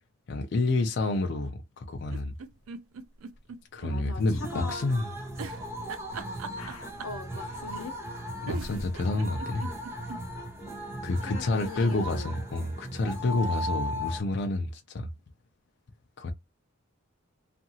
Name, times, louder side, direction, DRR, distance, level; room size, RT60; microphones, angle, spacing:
voice 1, 0.3-2.3 3.7-5.0 8.4-9.7 11.0-15.1 16.2-16.3, left 2 dB, 50° left, 0.4 m, -29 dB
sound 1, 2.0-3.9 4.3-4.4 5.4-7.2 8.1-8.2 8.5-10.2 10.6-10.7 10.9-11.0, right 5 dB, 75° right, 0.4 m, -40 dB
voice 2, 3.8-4.9 6.5-8.0 11.2-12.3 13.3-13.6, left 4 dB, 85° left, 0.7 m, -41 dB
sound 2, 4.2-14.2, equal, 10° right, 0.6 m, -37 dB
2.7 x 2.5 x 2.7 m
head